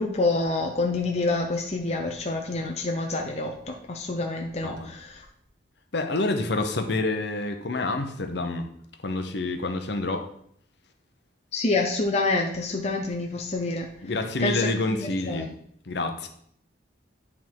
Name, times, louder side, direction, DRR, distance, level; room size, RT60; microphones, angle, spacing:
voice 1, 0.0-5.2 11.5-13.9 14.4-15.5, left 2 dB, 35° left, 1 dB, 0.6 m, -27 dB
voice 2, 5.9-8.7 9.0-10.2 14.0-15.5 15.9-16.3, left 2 dB, 60° left, 6 dB, 0.8 m, -28 dB
9.9 x 3.6 x 4.6 m, 0.68 s
head